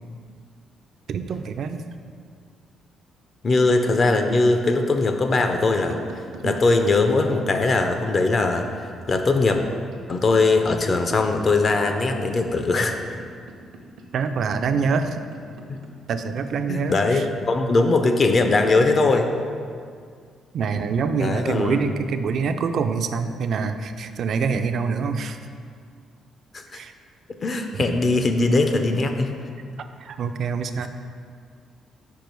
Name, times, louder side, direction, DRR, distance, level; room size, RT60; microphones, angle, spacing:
voice 1, 1.1-1.8 6.4-6.6 14.1-15.2 16.1-17.3 20.5-25.4 26.7-26.9 27.7-27.9 30.0-30.9, right 5 dB, 55° right, 8 dB, 0.3 m, -25 dB
voice 2, 3.4-6.0 6.4-9.6 10.1-13.0 16.7-19.3 21.2-21.8 26.5-26.6 27.4-29.3 30.8-30.9, left 3 dB, 35° left, 5 dB, 0.4 m, -20 dB
sound 1, 3.9-18.4, right 3 dB, 80° right, 0.7 m, -43 dB
4.8 x 4.6 x 5.2 m, 2.1 s
cardioid pair, 140°, 0 cm